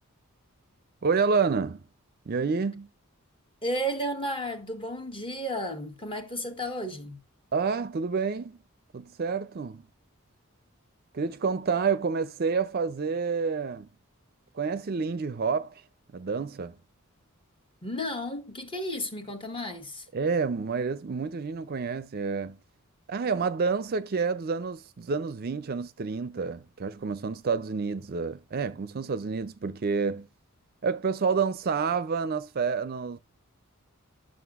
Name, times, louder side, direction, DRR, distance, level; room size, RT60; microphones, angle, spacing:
voice 1, 1.0-1.8 2.3-2.9 7.5-8.6 8.9-9.8 11.1-13.9 14.5-15.8 16.1-16.7 20.1-22.6 23.1-30.3 30.8-33.2, right 5 dB, 45° right, 0.4 m, -29 dB
voice 2, 3.6-7.2 17.8-20.1, equal, 25° left, 1.3 m, -33 dB
11.0 x 6.3 x 2.4 m
head